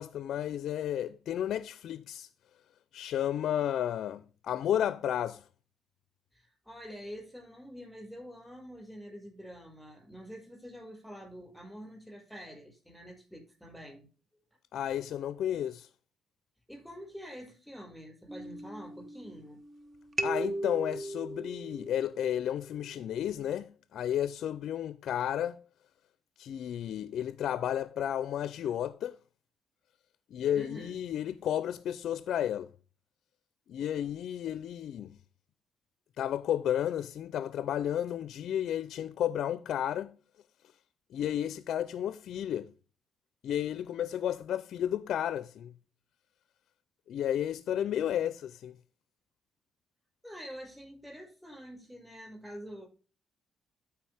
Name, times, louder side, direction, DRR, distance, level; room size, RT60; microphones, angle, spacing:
voice 1, 0.0-2.3 2.9-5.4 14.7-15.9 20.2-25.6 26.4-29.2 30.3-32.7 33.7-35.2 36.2-40.2 41.1-42.7 43.4-45.7 47.1-48.7, left 10 dB, 70° left, 0.4 m, -32 dB
voice 2, 6.3-14.1 16.7-19.6 30.5-31.0 50.2-52.9, equal, ahead, 5.3 m, -46 dB
sound 1, 18.3-19.7 20.2-22.8, right 1 dB, 40° right, 0.9 m, -37 dB
13.0 x 4.7 x 3.4 m
cardioid pair, 90°, 0 cm